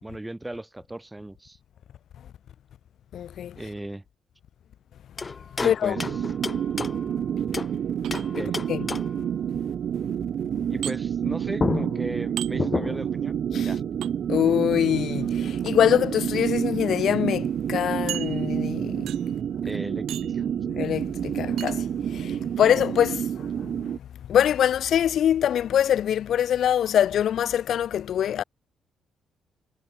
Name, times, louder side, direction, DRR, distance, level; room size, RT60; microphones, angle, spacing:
voice 1, 0.0-1.6 3.6-4.0 5.6-6.0 8.4-8.6 10.7-13.8 19.6-20.4, right 1 dB, 10° right, 5.1 m, -36 dB
voice 2, 3.1-3.6 5.6-6.0 8.4-8.5 8.7-8.9 13.5-13.7 14.3-19.1 20.6-23.8 24.3-28.4, left 10 dB, 70° left, 2.2 m, -24 dB
sound 1, 5.2-7.8 8.1-9.3 11.2-11.3 11.6-13.2, left 4 dB, 30° left, 1.4 m, -31 dB
sound 2, 5.9-24.0, right 9 dB, 60° right, 1.2 m, -29 dB
sound 3, 8.0-8.7 10.8-11.0 12.4-12.5 14.0-14.1 15.5-15.7 16.5-16.6 16.9-17.0 18.1-18.7 19.1-19.4 20.1-20.4 21.6-21.8, right 12 dB, 75° right, 1.6 m, -36 dB
cardioid pair, 90°, 0 cm